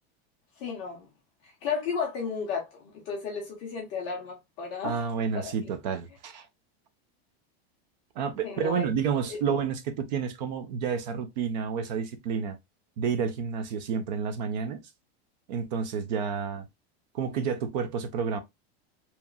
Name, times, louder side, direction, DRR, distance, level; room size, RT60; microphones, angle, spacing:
voice 1, 0.6-1.1 1.4-5.0 5.3-5.5 8.4-8.9 9.3-9.4, left 5 dB, 20° left, 0.3 m, -33 dB
voice 2, 4.8-6.5 8.2-12.6 13.0-14.8 15.5-16.7 17.1-18.4, right 6 dB, 45° right, 0.5 m, -30 dB
2.9 x 2.4 x 2.2 m
supercardioid pair, 180°, 32 cm